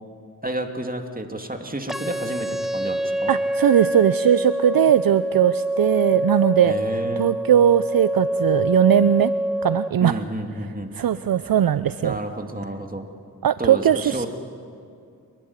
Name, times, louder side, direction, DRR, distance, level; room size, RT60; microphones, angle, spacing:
voice 1, 0.4-3.3 6.6-7.3 10.0-10.9 12.0-13.1 13.6-14.3, right 1 dB, 20° right, 5 dB, 2.6 m, -30 dB
sound 1, 1.9-9.9, right 1 dB, ahead, 0.8 m, -25 dB
voice 2, 3.3-6.8 7.2-9.3 9.6-10.2 10.9-12.2 13.4-14.3, right 10 dB, 60° right, 14 dB, 0.6 m, -19 dB
29.5 x 12.0 x 9.8 m, 2.3 s
cardioid pair, 40°, 39 cm